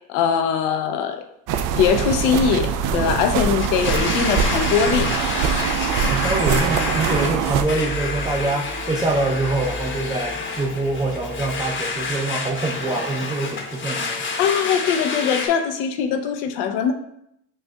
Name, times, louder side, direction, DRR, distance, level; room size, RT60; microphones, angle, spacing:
voice 1, 0.1-1.2 1.8-5.1 14.4-16.9, left 7 dB, 80° left, 7 dB, 0.6 m, -21 dB
sound 1, 1.5-12.9, right 4 dB, 40° right, 1.1 m, -36 dB
sound 2, 1.5-7.6, right 7 dB, 60° right, 0.5 m, -23 dB
Domestic sounds home sounds, 3.6-15.5, left 4 dB, 35° left, 0.8 m, -28 dB
voice 2, 6.0-14.2, right 2 dB, 15° right, -2 dB, 0.6 m, -25 dB
6.3 x 2.6 x 2.2 m, 0.76 s
hypercardioid pair, 65°, 36 cm